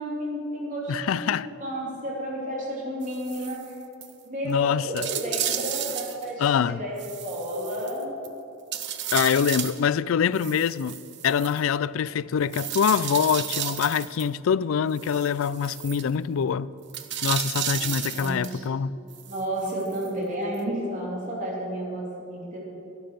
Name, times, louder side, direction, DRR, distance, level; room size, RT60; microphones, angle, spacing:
voice 1, 0.0-3.6 4.2-6.9 7.2-8.2 17.6-18.6 19.2-22.6, right 1 dB, 40° right, 3.1 m, -32 dB
voice 2, 0.9-1.5 4.4-5.1 6.4-6.8 9.1-11.0 11.2-16.7 17.2-18.9, left 7 dB, 75° left, 0.3 m, -24 dB
sound 1, 3.0-3.7 4.0-4.1 4.5-4.6 5.0-6.3 7.0-8.3 8.7-9.8 10.3-11.6 12.5-14.3 15.0-16.0 16.9-18.6 19.1-20.1 20.6-20.7, right 10 dB, 60° right, 0.8 m, -33 dB
12.0 x 11.5 x 6.6 m
head